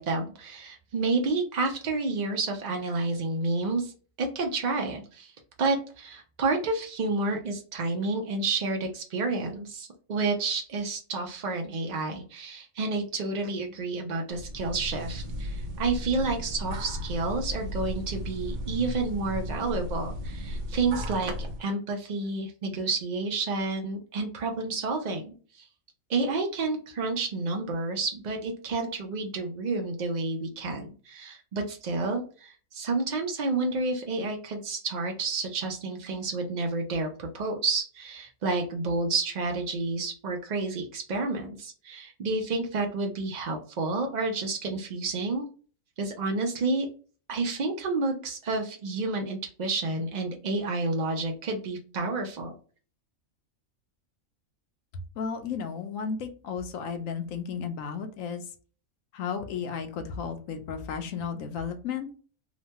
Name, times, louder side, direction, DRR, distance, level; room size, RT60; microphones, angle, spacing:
voice 1, 0.0-3.9 4.2-5.3 5.6-25.6 26.1-45.4 46.0-46.9 47.3-52.5, right 3 dB, 85° right, 2 dB, 0.3 m, -30 dB
sound 1, 14.3-21.6, equal, 65° right, 0.9 m, -35 dB
voice 2, 55.2-58.4 59.1-62.1, left 6 dB, 75° left, 7 dB, 0.9 m, -33 dB
3.0 x 2.2 x 2.7 m, 0.39 s
omnidirectional pair, 1.5 m